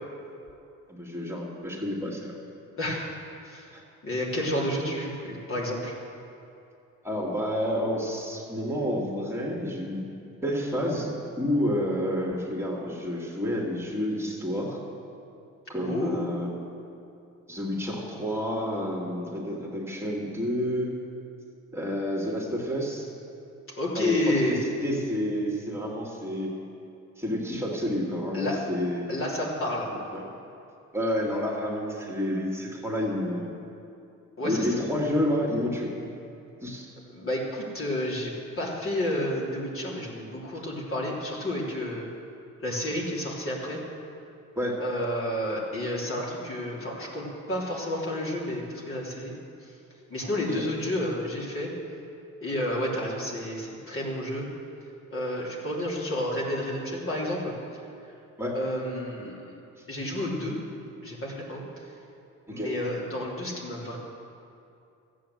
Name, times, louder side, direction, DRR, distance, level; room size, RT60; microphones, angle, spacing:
voice 1, 0.9-2.3 3.7-3.8 7.0-10.0 10.4-14.8 15.7-16.5 17.5-20.9 21.7-23.1 23.9-26.5 27.2-29.1 30.1-30.2 30.9-33.5 34.4-35.9 36.6-36.9 44.6-44.8 50.5-50.6 58.4-58.6 59.8-59.9 62.5-62.7, equal, 10° right, -2 dB, 2.3 m, -29 dB
voice 2, 2.8-3.1 3.4-3.7 4.0-5.9 15.8-16.3 23.8-24.6 28.3-28.6 29.1-29.9 34.4-34.8 37.1-42.1 42.6-43.8 44.8-49.3 49.6-49.7 50.1-51.7 52.4-54.5 55.1-57.5 58.5-59.5 59.9-60.6 61.0-61.9 62.5-64.0, left 1 dB, 45° left, -3 dB, 3.2 m, -30 dB
13.5 x 8.5 x 7.8 m, 2.6 s
cardioid pair, 90°, 30 cm